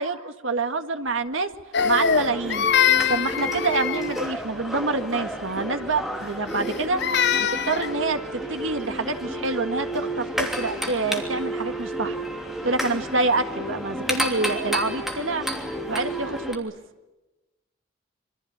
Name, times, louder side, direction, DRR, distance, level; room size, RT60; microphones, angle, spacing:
voice 1, 0.0-1.5 1.8-2.7 3.1-7.0 7.4-12.2 12.6-15.5 15.9-16.7, right 3 dB, 65° right, 8 dB, 1.7 m, -27 dB
Crying sobbing, 1.7-4.3 6.5-7.9, left 8 dB, 55° left, 0.8 m, -23 dB
sound 1, 1.8-16.6, right 1 dB, ahead, 3.0 m, -31 dB
26.5 x 23.0 x 8.7 m, 1.1 s
head